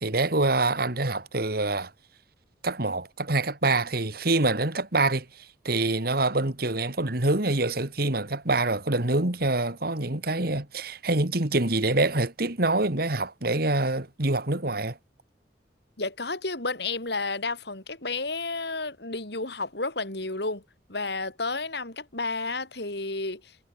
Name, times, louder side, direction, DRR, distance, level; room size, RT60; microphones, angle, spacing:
voice 1, 0.0-1.9 2.6-15.0, right 2 dB, 55° right, 2.3 m, -26 dB
voice 2, 16.0-20.6 20.9-23.6, left 3 dB, 60° left, 3.8 m, -31 dB
head